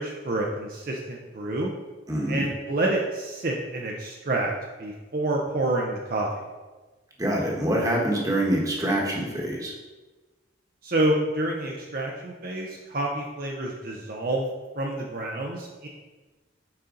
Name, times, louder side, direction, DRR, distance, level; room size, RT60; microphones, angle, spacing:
voice 1, 0.0-1.7 2.3-4.5 4.8-6.3 10.8-14.5 14.7-15.9, right 2 dB, 45° right, -1 dB, 0.7 m, -28 dB
voice 2, 2.1-2.5 7.2-9.7, right 1 dB, 20° right, -2 dB, 1.3 m, -25 dB
8.9 x 4.2 x 3.9 m, 1.2 s
head